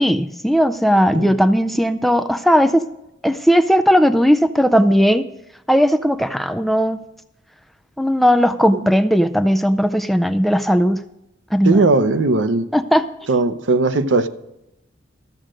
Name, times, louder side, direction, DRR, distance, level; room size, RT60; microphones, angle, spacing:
voice 1, 0.0-2.8 3.2-5.2 5.7-7.0 8.0-11.0 11.5-11.8 12.7-13.0, equal, ahead, 10 dB, 0.3 m, -16 dB
voice 2, 11.6-12.6 13.3-14.3, right 3 dB, 70° right, 11 dB, 0.7 m, -18 dB
13.5 x 7.6 x 5.1 m, 0.89 s
head